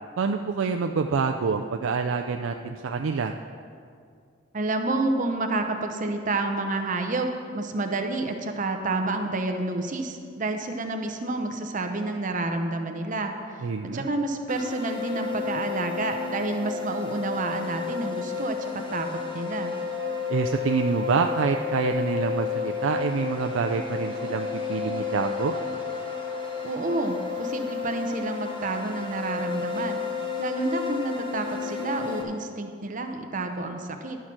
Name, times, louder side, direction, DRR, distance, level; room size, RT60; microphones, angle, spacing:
voice 1, 0.2-3.4 13.6-14.1 20.3-25.5, right 5 dB, 85° right, 4 dB, 0.4 m, -26 dB
voice 2, 4.5-19.7 26.6-34.2, right 2 dB, 40° right, 5 dB, 0.7 m, -29 dB
sound 1, 14.5-32.2, left 6 dB, 25° left, 1.1 m, -32 dB
11.0 x 6.5 x 6.0 m, 2.2 s
head